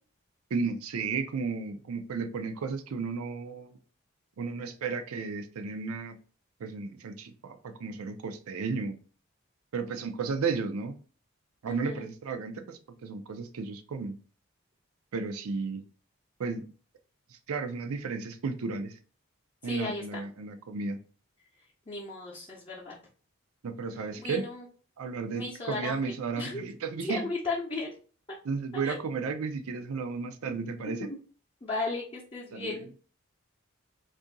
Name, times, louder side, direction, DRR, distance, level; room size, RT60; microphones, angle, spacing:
voice 1, 0.5-3.8 4.4-6.2 6.6-9.0 9.7-11.0 11.6-14.2 15.1-15.8 16.4-16.6 17.5-18.9 19.6-21.0 23.6-24.5 25.0-27.3 28.4-31.1 32.5-32.8, right 4 dB, 85° right, 9 dB, 0.4 m, -33 dB
voice 2, 11.7-12.1 19.6-20.2 21.9-23.0 24.2-24.6 25.3-26.1 26.3-26.7 27.0-27.9 28.7-29.0 31.0-31.2 31.6-32.9, left 3 dB, 25° left, -5 dB, 0.6 m, -35 dB
2.7 x 2.5 x 3.8 m, 0.40 s
head